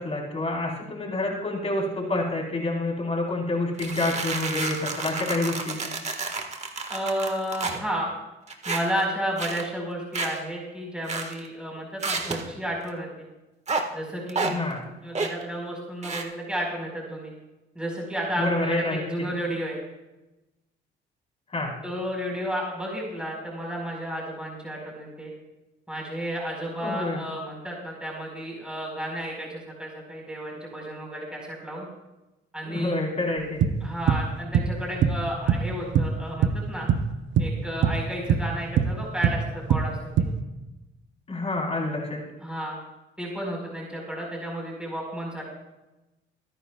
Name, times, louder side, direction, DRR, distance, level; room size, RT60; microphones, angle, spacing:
voice 1, 0.0-5.8 14.4-14.8 18.3-19.3 21.5-21.7 26.8-27.2 32.7-33.6 41.3-42.2, left 2 dB, 30° left, -2 dB, 4.2 m, -28 dB
sound 1, 3.8-7.8 8.5-9.0 9.4-9.6 10.1-10.4 11.1-11.5 12.0-12.5 13.7-13.8 14.3-14.5 15.1-15.4 16.0-16.2, right 3 dB, 35° right, 1.6 m, -30 dB
voice 2, 6.9-8.1 8.6-13.3 13.9-14.6 15.0-17.3 17.7-19.8 21.8-25.3 25.9-31.9 32.5-33.0 33.8-36.9 37.4-40.3 42.4-42.8 43.2-45.4, equal, 5° right, -2 dB, 4.6 m, -32 dB
sound 2, 33.4-36.6 36.9-37.1 37.4-40.4, right 7 dB, 70° right, 0.9 m, -22 dB
25.0 x 9.9 x 2.4 m, 1.0 s
cardioid pair, 90°, 20 cm